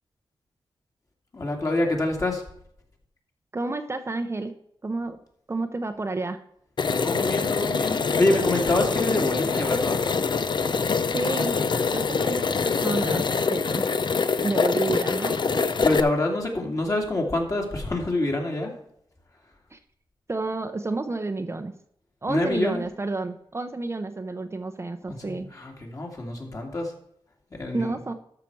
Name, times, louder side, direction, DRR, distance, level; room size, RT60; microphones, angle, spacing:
voice 1, 1.3-2.4 7.0-10.0 15.8-18.7 22.3-22.8 25.1-26.9 27.5-27.9, left 2 dB, 35° left, 0 dB, 2.4 m, -26 dB
voice 2, 3.5-4.5 4.8-5.2 5.5-6.4 11.1-11.6 11.9-13.8 14.4-15.7 19.7-19.8 20.3-21.7 22.2-25.5 27.7-28.1, right 2 dB, 30° right, 7 dB, 0.7 m, -30 dB
sound 1, 6.8-16.0, left 5 dB, 55° left, 0.6 m, -25 dB
13.0 x 5.9 x 4.7 m, 0.71 s
wide cardioid pair, 100°, 9 cm